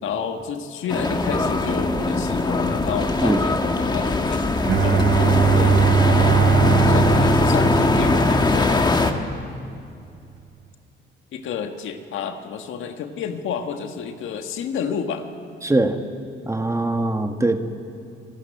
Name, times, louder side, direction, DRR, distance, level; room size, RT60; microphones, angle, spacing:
voice 1, 0.0-4.4 4.8-5.8 6.8-9.6 11.3-15.3, left 7 dB, 80° left, 6 dB, 1.5 m, -30 dB
sound 1, 0.9-9.1, left 2 dB, 20° left, 1.6 m, -20 dB
Bowed string instrument, 4.6-8.6, right 8 dB, 65° right, 1.0 m, -20 dB
voice 2, 15.6-16.0 16.5-17.6, right 2 dB, 15° right, 6 dB, 1.5 m, -21 dB
26.0 x 13.5 x 9.0 m, 2.5 s
cardioid pair, 90°, 20 cm